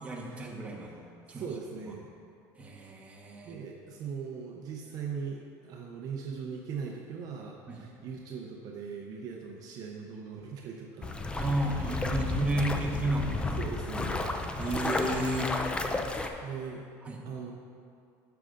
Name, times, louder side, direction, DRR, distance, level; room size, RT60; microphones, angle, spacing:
voice 1, 0.0-1.0 1.3-1.5 2.6-3.6 7.7-7.8 11.3-13.6 14.5-15.5 16.1-16.3 17.0-17.2, right 1 dB, 15° right, -2 dB, 1.2 m, -32 dB
voice 2, 1.3-2.1 3.4-11.2 11.7-12.4 13.6-14.3 16.4-16.8 17.3-17.5, right 6 dB, 50° right, 0 dB, 0.7 m, -40 dB
sound 1, 11.0-16.3, left 2 dB, 15° left, 0.5 m, -32 dB
10.5 x 6.8 x 2.5 m, 2.4 s
supercardioid pair, 115°, 8 cm